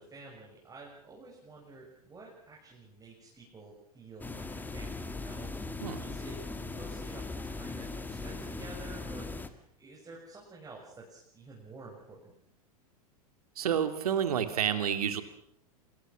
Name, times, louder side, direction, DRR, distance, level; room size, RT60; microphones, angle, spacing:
voice 1, 0.0-5.5 5.9-6.4 6.7-12.4, right 3 dB, 15° right, -3 dB, 7.0 m, -50 dB
sound 1, 4.2-9.5, left 3 dB, 10° left, 2.0 m, -39 dB
voice 2, 13.6-15.2, right 8 dB, 70° right, 9 dB, 2.7 m, -29 dB
27.5 x 20.5 x 6.3 m, 0.70 s
figure-of-eight pair, 90°, 20 cm